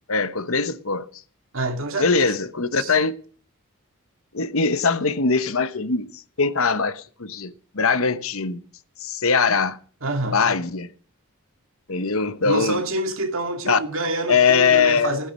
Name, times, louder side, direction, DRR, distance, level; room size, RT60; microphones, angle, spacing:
voice 1, 0.1-1.1 2.0-3.1 4.3-6.1 6.4-8.6 9.0-9.8 10.3-10.9 11.9-12.8 13.7-13.8 14.3-15.2, left 5 dB, 70° left, 1.0 m, -21 dB
voice 2, 1.5-2.3 2.8-3.0 10.0-10.6 12.4-15.3, right 2 dB, 65° right, 2.4 m, -27 dB
15.5 x 9.7 x 6.3 m
head